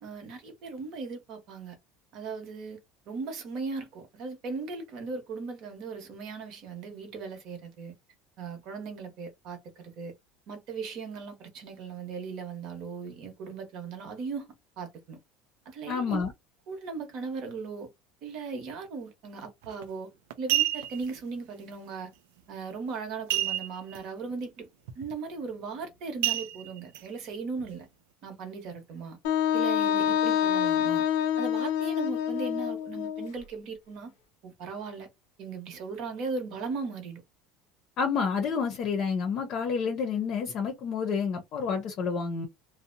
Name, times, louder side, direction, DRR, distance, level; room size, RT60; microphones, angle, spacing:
voice 1, 0.0-1.8 2.1-2.8 3.1-7.9 8.4-10.1 10.5-14.5 14.8-15.2 15.6-16.2 16.7-17.9 18.2-20.1 20.4-22.1 22.5-24.7 24.9-27.9 28.2-29.2 29.5-31.0 31.4-34.1 34.4-35.1 35.4-37.2, right 4 dB, 50° right, 1.0 m, -38 dB
voice 2, 15.9-16.3 38.0-42.5, left 5 dB, 40° left, 0.6 m, -29 dB
sound 1, 19.6-19.8 20.3-21.1 23.3-24.0 24.3-24.4 24.9-25.1 26.2-27.0 27.6-27.7, right 14 dB, 85° right, 0.4 m, -29 dB
Wind instrument woodwind instrument, 29.2-33.3, left 9 dB, 90° left, 0.5 m, -26 dB
2.6 x 2.1 x 2.6 m
cardioid pair, 155°, 0 cm